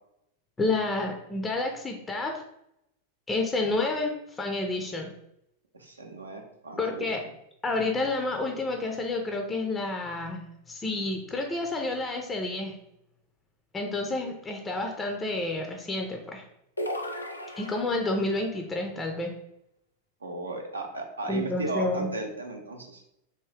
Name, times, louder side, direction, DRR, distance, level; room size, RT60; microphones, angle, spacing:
voice 1, 0.6-2.3 3.3-5.1 6.8-7.2 7.6-10.4 10.7-12.7 13.7-16.4 17.6-19.3 21.3-22.1, left 2 dB, 15° left, 3 dB, 0.5 m, -29 dB
voice 2, 5.7-7.3 20.2-23.0, right 2 dB, 80° right, 2 dB, 0.7 m, -36 dB
sound 1, 16.8-18.3, equal, 80° left, 0.4 m, -35 dB
3.5 x 2.6 x 3.3 m, 0.80 s
figure-of-eight pair, 90°, 0 cm